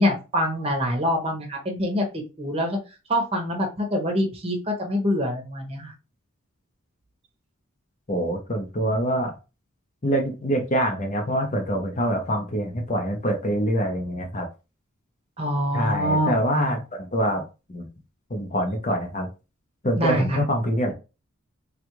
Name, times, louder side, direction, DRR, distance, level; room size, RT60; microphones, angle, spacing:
voice 1, 0.0-2.8 3.1-5.9 15.4-16.8 20.0-20.4, equal, 25° right, 2 dB, 0.8 m, -25 dB
voice 2, 8.1-9.3 10.0-14.5 15.7-17.9 18.3-19.3 19.8-20.9, equal, 35° left, 3 dB, 0.6 m, -25 dB
3.5 x 2.4 x 2.9 m, 0.29 s
head